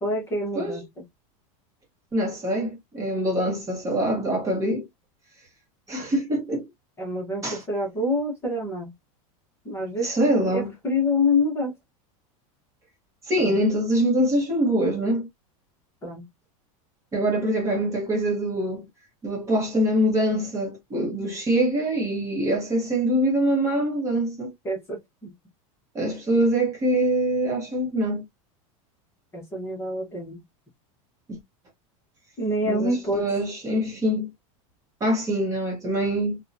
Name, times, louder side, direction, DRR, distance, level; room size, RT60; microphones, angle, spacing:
voice 1, 0.0-0.8 7.0-8.9 9.6-10.1 10.4-11.7 13.4-13.6 16.0-16.2 24.6-25.3 29.3-30.4 32.4-33.2, left 2 dB, 15° left, 0.9 m, -26 dB
voice 2, 2.1-4.9 5.9-6.7 7.4-7.6 10.0-10.7 13.2-15.3 17.1-18.9 19.2-24.5 25.9-28.2 32.6-34.3 35.0-36.4, right 1 dB, 20° right, 0.9 m, -24 dB
2.6 x 2.2 x 2.6 m
supercardioid pair, 160°, 17 cm